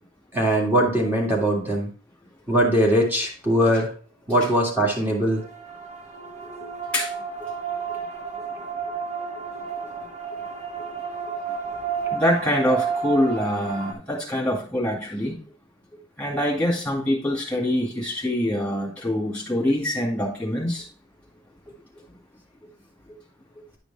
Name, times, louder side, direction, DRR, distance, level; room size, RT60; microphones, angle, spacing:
voice 1, 0.3-1.9 2.5-3.9 4.3-5.4 7.9-8.0, equal, 10° right, -2 dB, 2.1 m, -21 dB
sound 1, 5.3-13.9, right 6 dB, 35° right, 1.1 m, -31 dB
voice 2, 12.1-15.4 16.2-20.9, left 1 dB, 5° left, -1 dB, 2.3 m, -24 dB
10.5 x 5.1 x 3.5 m, 0.41 s
head